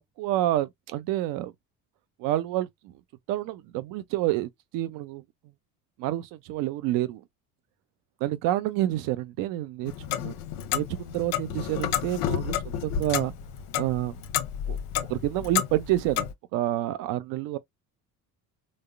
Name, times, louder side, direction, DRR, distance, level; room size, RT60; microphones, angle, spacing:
voice 1, 0.2-1.5 2.2-2.9 3.3-5.2 6.0-7.2 8.2-10.3 10.7-13.3 13.8-14.2 14.7-14.8 15.1-17.6, right 14 dB, 45° right, 0.6 m, -28 dB
Clock, 9.8-16.3, left 10 dB, 50° left, 0.6 m, -31 dB
3.6 x 2.1 x 3.4 m
figure-of-eight pair, 60°, 46 cm